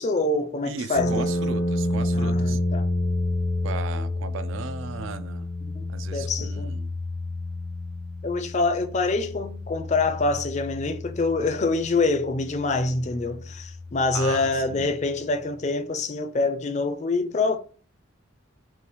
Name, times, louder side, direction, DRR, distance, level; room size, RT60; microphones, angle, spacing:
voice 1, 0.0-1.3 2.1-2.9 5.7-6.7 8.2-17.6, left 3 dB, 35° left, 0.4 m, -26 dB
voice 2, 0.6-2.6 3.6-5.5 5.9-6.9 14.1-14.9, right 5 dB, 65° right, 0.4 m, -35 dB
sound 1, 0.9-15.0, left 1 dB, 85° left, 0.6 m, -30 dB
5.5 x 2.4 x 3.0 m
head